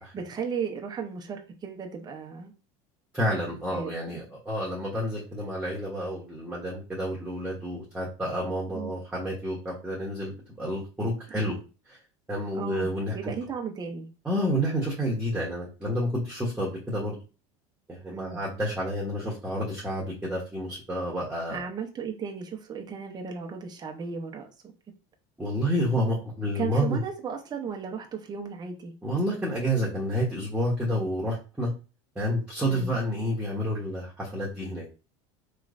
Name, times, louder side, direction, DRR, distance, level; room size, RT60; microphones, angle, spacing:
voice 1, 0.1-2.5 3.7-4.3 8.7-9.0 11.3-11.6 12.5-14.1 18.1-18.4 21.5-24.5 26.5-28.9 32.6-32.9, right 6 dB, 25° right, 2 dB, 0.7 m, -35 dB
voice 2, 3.1-11.6 11.9-12.0 12.3-13.1 14.2-17.2 17.9-21.6 25.4-27.0 29.0-31.7 32.1-34.9, equal, 10° right, -5 dB, 1.1 m, -29 dB
3.0 x 3.0 x 2.5 m, 0.33 s
supercardioid pair, 105°, 16 cm